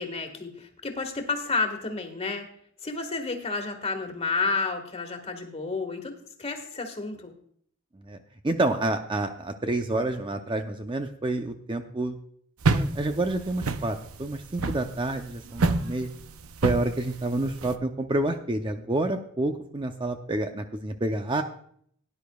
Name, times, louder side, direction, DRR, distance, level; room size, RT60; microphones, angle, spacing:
voice 1, 0.0-2.5 2.8-7.3, left 4 dB, 30° left, 5 dB, 1.7 m, -31 dB
voice 2, 8.4-12.2 12.7-16.1 16.6-21.4, right 2 dB, 25° right, 6 dB, 0.6 m, -28 dB
sound 1, 12.6-17.7, right 3 dB, 85° right, 0.7 m, -28 dB
18.0 x 10.5 x 2.3 m, 0.63 s
head